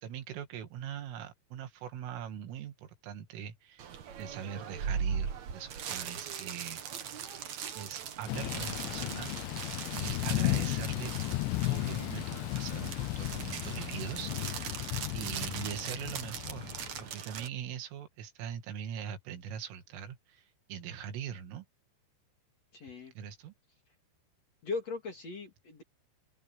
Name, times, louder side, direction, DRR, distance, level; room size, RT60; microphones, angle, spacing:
voice 1, 0.0-6.8 7.8-9.6 9.9-11.1 11.6-14.8 15.1-16.7 17.0-21.7 23.2-23.5, right 8 dB, 85° right, 4.6 m, -42 dB
sound 1, 3.8-17.5, right 7 dB, 65° right, 1.8 m, -40 dB
Thunder / Rain, 8.3-17.1, left 22 dB, 80° left, 2.7 m, -35 dB
voice 2, 22.7-23.1 24.6-25.8, left 4 dB, 45° left, 2.7 m, -39 dB
open air
omnidirectional pair, 5.6 m